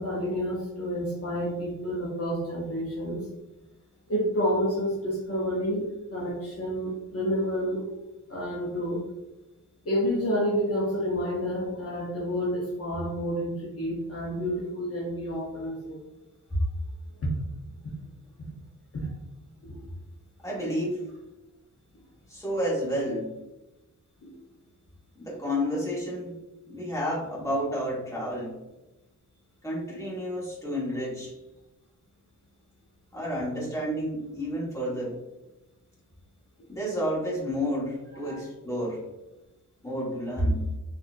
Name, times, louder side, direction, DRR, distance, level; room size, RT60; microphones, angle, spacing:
voice 1, 0.0-3.3 4.1-5.8 6.1-7.8 8.3-9.0 9.8-16.0 17.2-17.3 17.8-17.9 18.9-19.1 19.6-19.8 24.2-24.4 29.9-30.0 38.2-38.4, equal, 45° left, -5 dB, 0.8 m, -29 dB
voice 2, 20.4-21.0 22.3-23.3 25.1-26.3 26.7-28.6 29.6-31.4 33.1-35.2 36.7-39.0 39.8-40.6, equal, 10° left, -6 dB, 1.3 m, -30 dB
4.0 x 2.5 x 2.5 m, 1.0 s
wide cardioid pair, 115°, 34 cm